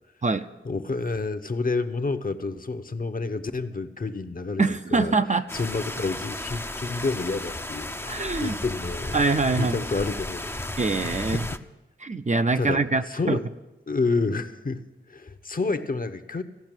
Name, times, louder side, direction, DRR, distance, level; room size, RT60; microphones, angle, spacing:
voice 1, 0.6-4.6 4.9-5.1 5.5-9.2 9.6-10.5 11.0-11.4 12.6-12.8 13.1-13.4 13.9-14.8 15.1-16.4, left 3 dB, 45° left, 9 dB, 0.8 m, -29 dB
voice 2, 4.6-5.5 8.1-8.6 9.1-9.8 10.8-11.4 12.0-13.4, right 3 dB, 35° right, 9 dB, 0.6 m, -24 dB
sound 1, 5.5-11.6, left 1 dB, 10° left, 0.5 m, -34 dB
15.5 x 5.8 x 8.9 m, 1.1 s
wide cardioid pair, 55°, 20 cm